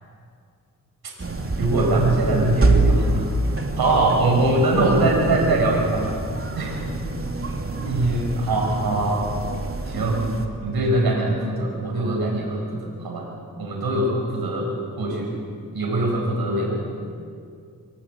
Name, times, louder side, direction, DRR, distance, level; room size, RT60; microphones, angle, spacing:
sound 1, 1.2-10.5, right 2 dB, 35° right, 3.2 m, -26 dB
voice 1, 1.6-3.3 3.8-6.1 6.6-6.8 7.7-9.2 9.9-10.2 10.6-13.3 13.6-14.7 15.0-15.3 15.7-16.8, right 2 dB, 90° right, 0 dB, 5.9 m, -22 dB
25.0 x 23.5 x 8.5 m, 2.3 s
cardioid pair, 50°, 36 cm